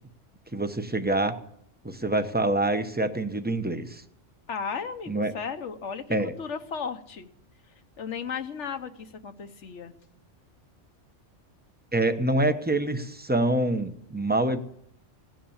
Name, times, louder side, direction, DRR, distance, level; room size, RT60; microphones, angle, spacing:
voice 1, 0.5-1.4 1.8-4.0 5.1-5.3 6.1-6.3 11.9-14.6, right 1 dB, 10° right, 8 dB, 0.8 m, -26 dB
voice 2, 4.5-6.1 6.4-7.3 8.0-9.9, left 6 dB, 70° left, 9 dB, 1.3 m, -35 dB
17.0 x 10.5 x 7.2 m, 0.73 s
omnidirectional pair, 1.3 m